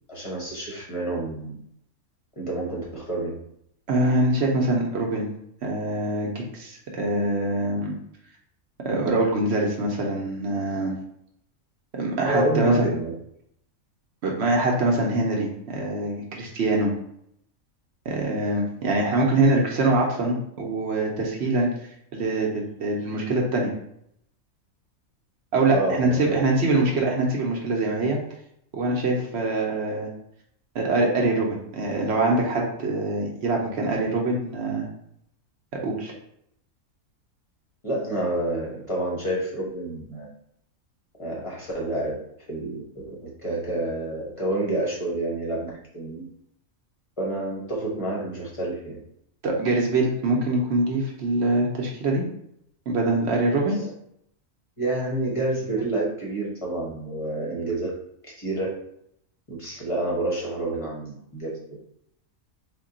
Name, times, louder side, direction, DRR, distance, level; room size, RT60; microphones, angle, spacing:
voice 1, 0.1-1.6 2.4-3.4 12.2-13.1 25.7-26.4 37.8-40.3 41.2-42.2 42.5-46.2 47.2-49.0 53.7-53.8 54.8-57.9 58.4-58.8 59.5-61.6, right 1 dB, 30° left, -3 dB, 0.6 m, -28 dB
voice 2, 3.9-5.3 5.6-7.9 8.8-10.9 11.9-12.9 14.2-16.9 18.0-21.7 22.1-23.7 25.5-28.2 28.7-30.1 30.7-34.9 35.8-36.1 49.4-52.2 52.9-53.8, right 2 dB, 60° right, -1 dB, 0.8 m, -24 dB
3.6 x 2.2 x 3.7 m, 0.73 s
omnidirectional pair, 1.4 m